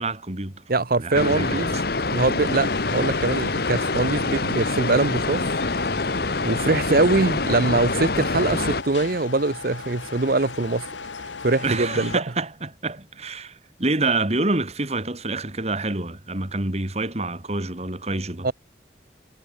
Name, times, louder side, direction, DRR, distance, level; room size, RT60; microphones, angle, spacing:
voice 1, 0.0-0.6 1.0-1.8 11.6-18.5, right 2 dB, 35° right, 2.3 m, -27 dB
voice 2, 0.7-1.7 2.1-5.5 6.4-10.9 11.2-12.2 18.4-18.5, right 3 dB, 50° right, 0.8 m, -23 dB
sound 1, 1.1-8.8, left 3 dB, 55° left, 1.4 m, -25 dB
sound 2, 2.4-12.2, left 4 dB, 90° left, 1.2 m, -36 dB
head